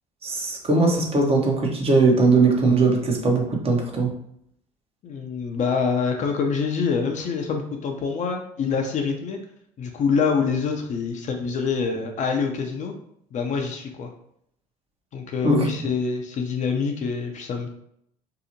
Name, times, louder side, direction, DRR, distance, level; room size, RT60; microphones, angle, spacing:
voice 1, 0.2-4.1 15.4-15.7, right 3 dB, 35° right, 0 dB, 0.8 m, -20 dB
voice 2, 5.0-9.4 9.8-12.9 13.3-14.1 15.1-17.7, left 5 dB, 45° left, 3 dB, 0.5 m, -25 dB
2.7 x 2.0 x 2.8 m, 0.72 s
hypercardioid pair, 65°, 18 cm